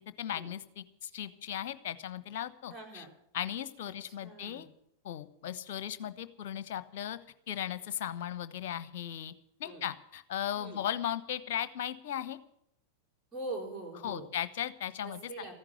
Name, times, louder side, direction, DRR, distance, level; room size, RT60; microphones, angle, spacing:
voice 1, 0.2-3.0 3.3-4.7 5.0-7.2 7.5-9.3 9.6-12.4 14.0-15.2, left 10 dB, 50° left, 14 dB, 1.1 m, -37 dB
voice 2, 2.7-3.1 3.9-4.0 4.2-4.7 9.6-9.8 10.6-10.8 13.3-14.3 15.0-15.5, right 2 dB, 20° right, -1 dB, 4.2 m, -42 dB
14.5 x 11.0 x 8.0 m, 0.72 s
figure-of-eight pair, 90°, 0 cm